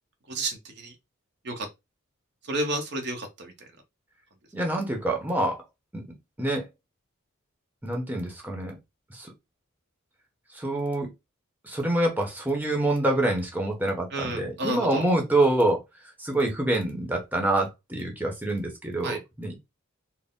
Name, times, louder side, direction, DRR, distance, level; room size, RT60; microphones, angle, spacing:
voice 1, 0.3-0.9 1.4-1.7 2.5-3.5 14.1-15.1 19.0-19.2, right 2 dB, 55° right, 0.8 m, -31 dB
voice 2, 4.5-5.6 5.9-6.0 6.4-6.7 7.8-8.8 9.1-9.3 10.5-11.1 11.6-19.5, right 1 dB, 10° right, 1.0 m, -26 dB
4.2 x 2.1 x 3.7 m
head